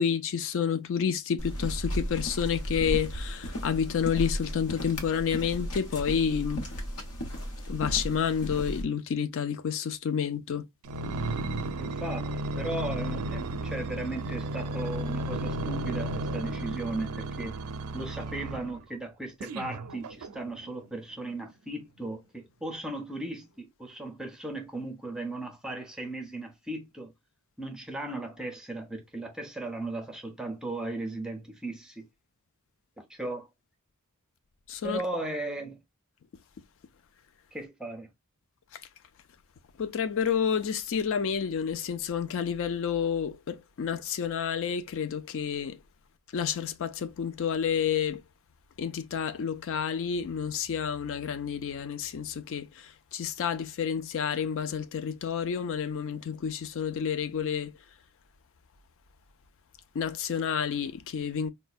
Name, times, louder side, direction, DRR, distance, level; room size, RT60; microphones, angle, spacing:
voice 1, 0.0-6.6 7.7-10.7 34.7-35.0 38.7-38.8 39.8-45.8 46.3-48.2 48.8-57.7 59.9-61.5, left 7 dB, 60° left, 0.4 m, -29 dB
sound 1, 1.4-8.8, equal, 90° left, 0.9 m, -35 dB
sound 2, 10.8-18.8 19.4-20.7 21.3-21.4, right 2 dB, 85° right, 0.4 m, -34 dB
voice 2, 11.8-17.6 17.9-27.1 27.6-32.1 33.0-33.5 34.8-35.8 37.5-38.1, right 2 dB, 5° right, 0.5 m, -36 dB
4.3 x 2.1 x 2.3 m
head